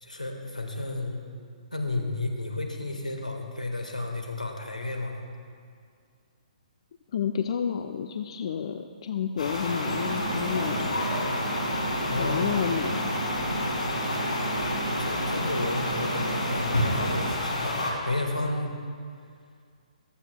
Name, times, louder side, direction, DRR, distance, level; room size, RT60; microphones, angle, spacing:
voice 1, 0.0-1.2 1.7-5.2 12.1-12.5 15.0-18.8, left 2 dB, 85° left, 2 dB, 1.5 m, -32 dB
voice 2, 7.1-11.0 12.2-13.1, left 7 dB, 50° left, 7 dB, 0.4 m, -30 dB
sound 1, 9.4-17.9, left 1 dB, 70° left, 2.7 m, -30 dB
sound 2, 9.8-17.4, right 2 dB, 75° right, 0.7 m, -33 dB
14.5 x 11.5 x 2.2 m, 2.2 s
figure-of-eight pair, 130°, 4 cm